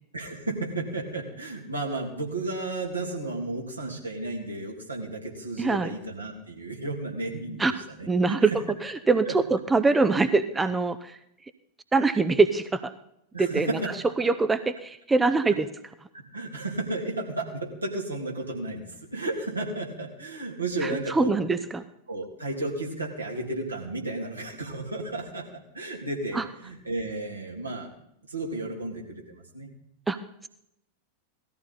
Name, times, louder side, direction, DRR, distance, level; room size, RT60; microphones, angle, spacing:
voice 1, 0.1-7.6 8.0-8.5 9.3-9.4 13.3-13.9 16.3-21.4 22.1-27.9 28.3-29.7, right 2 dB, 80° right, -1 dB, 3.0 m, -33 dB
voice 2, 5.6-5.9 7.6-7.7 8.1-8.5 8.8-11.2 11.9-12.9 13.4-13.7 14.2-15.7 20.8-21.8 26.3-26.4 30.1-30.2, right 3 dB, 10° right, 12 dB, 0.6 m, -23 dB
18.0 x 14.0 x 4.1 m, 0.78 s
figure-of-eight pair, 90°, 0 cm